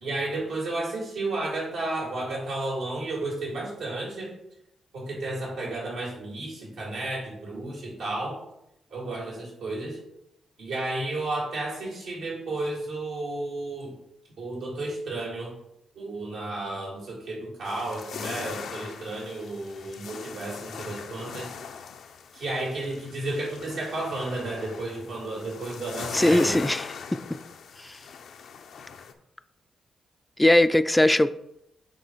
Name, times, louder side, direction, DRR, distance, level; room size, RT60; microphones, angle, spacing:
voice 1, 0.0-4.3 4.9-8.4 8.9-10.0 10.6-13.9 14.4-15.6 15.9-21.5 22.3-26.6, right 2 dB, 85° right, -4 dB, 2.3 m, -32 dB
sound 1, 17.6-29.1, left 6 dB, 80° left, 0.5 m, -40 dB
voice 2, 26.1-26.9 27.1-27.2 30.4-31.4, left 1 dB, 10° left, 12 dB, 0.3 m, -20 dB
6.5 x 3.3 x 4.5 m, 0.82 s
cardioid pair, 65°, 0 cm